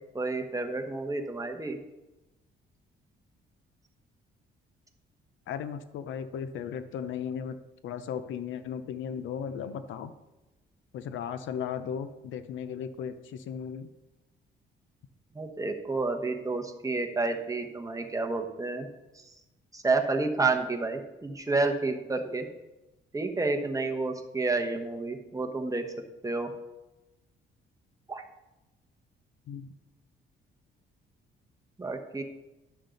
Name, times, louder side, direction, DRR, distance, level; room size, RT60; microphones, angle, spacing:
voice 1, 0.1-1.8 15.3-18.9 19.7-22.5 23.1-25.8 26.2-26.5 28.1-28.2 31.8-32.2, right 3 dB, 15° right, 4 dB, 1.2 m, -30 dB
voice 2, 5.5-7.6 7.8-10.1 10.9-13.9 29.5-29.7, left 8 dB, 75° left, 11 dB, 0.7 m, -36 dB
11.5 x 6.4 x 3.9 m, 1.0 s
cardioid pair, 90°, 20 cm